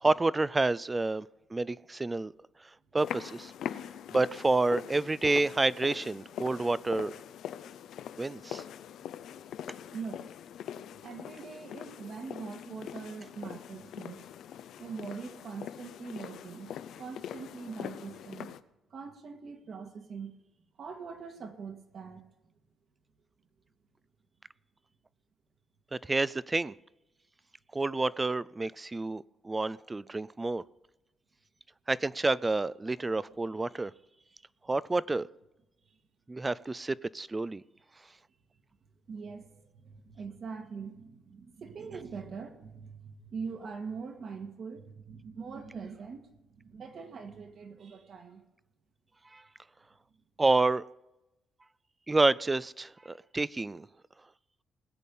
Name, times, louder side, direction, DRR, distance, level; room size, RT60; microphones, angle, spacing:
voice 1, 0.0-2.3 2.9-3.5 4.1-7.2 8.2-8.6 25.9-26.7 27.7-30.6 31.9-33.9 34.7-35.3 36.3-37.6 49.3-49.4 50.4-50.8 52.1-53.9, right 2 dB, 20° right, 20 dB, 0.3 m, -29 dB
sound 1, 3.0-18.6, left 10 dB, 75° left, 0.6 m, -43 dB
voice 2, 9.9-10.3 11.0-14.3 14.8-18.5 18.9-20.3 20.8-22.3 39.1-46.2 46.5-48.4, right 5 dB, 55° right, 6 dB, 1.7 m, -42 dB
19.5 x 8.3 x 5.5 m, 0.98 s
cardioid pair, 110°, 0 cm